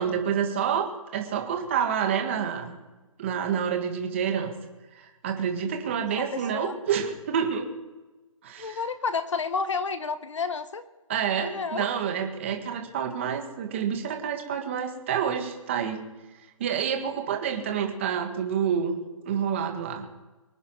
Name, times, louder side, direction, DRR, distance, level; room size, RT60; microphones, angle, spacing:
voice 1, 0.0-2.8 3.2-4.5 5.0-7.7 8.4-8.8 11.1-16.0 16.6-19.0 19.2-20.0, right 8 dB, 20° right, 4 dB, 1.6 m, -28 dB
voice 2, 6.2-6.7 8.6-10.8 11.4-11.9, left 5 dB, 60° left, 12 dB, 1.2 m, -30 dB
24.0 x 9.8 x 4.6 m, 1.2 s
hypercardioid pair, 175°, 18 cm